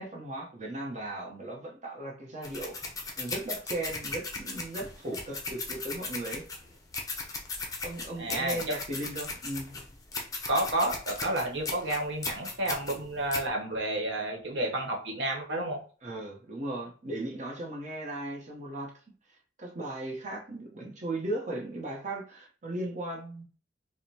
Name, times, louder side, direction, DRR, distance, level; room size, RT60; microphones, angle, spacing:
voice 1, 0.0-2.8 3.2-6.4 7.8-9.7 16.0-18.9 19.6-23.4, right 1 dB, 40° right, 0.9 m, -37 dB
sound 1, 2.4-13.5, left 3 dB, 20° left, 0.6 m, -37 dB
voice 2, 8.2-8.7 10.5-15.8, right 1 dB, 70° right, 1.1 m, -30 dB
4.9 x 2.1 x 2.8 m
head